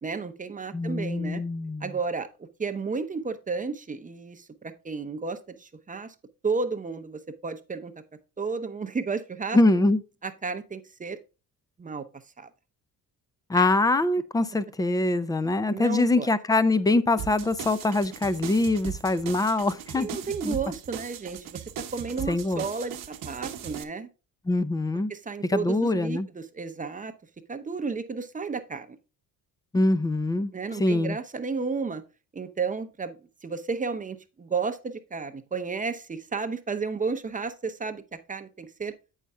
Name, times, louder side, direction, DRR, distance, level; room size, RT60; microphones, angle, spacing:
voice 1, 0.0-1.4 1.8-6.1 6.4-7.9 8.4-9.6 10.2-11.2 11.8-12.5 13.5-13.7 15.7-16.3 20.0-24.1 25.1-27.1 27.5-29.0 30.5-32.0 32.3-38.0 38.3-38.9, right 4 dB, 20° right, 0.7 m, -32 dB
voice 2, 0.7-1.9 9.5-10.0 13.5-20.1 20.4-20.6 22.3-22.6 24.5-25.1 25.5-26.3 29.7-30.5 30.8-31.2, left 2 dB, 10° left, 0.4 m, -24 dB
sound 1, 17.2-23.8, right 9 dB, 65° right, 1.1 m, -39 dB
8.3 x 5.5 x 3.5 m
cardioid pair, 115°, 36 cm